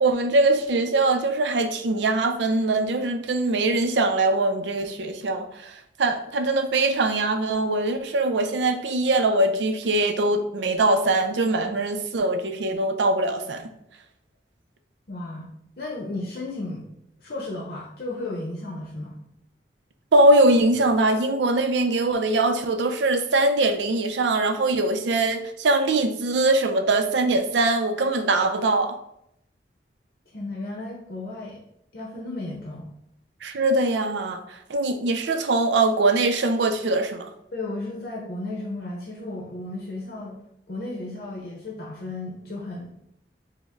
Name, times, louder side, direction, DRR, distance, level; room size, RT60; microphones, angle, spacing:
voice 1, 0.0-13.7 20.1-29.0 33.4-37.3, right 2 dB, 85° right, 6 dB, 0.5 m, -22 dB
voice 2, 15.1-15.5 15.8-16.9 17.2-19.2 30.3-31.6 31.9-32.9 37.5-40.4 40.7-42.9, left 2 dB, 55° left, -3 dB, 0.7 m, -34 dB
5.1 x 2.1 x 3.5 m, 0.77 s
head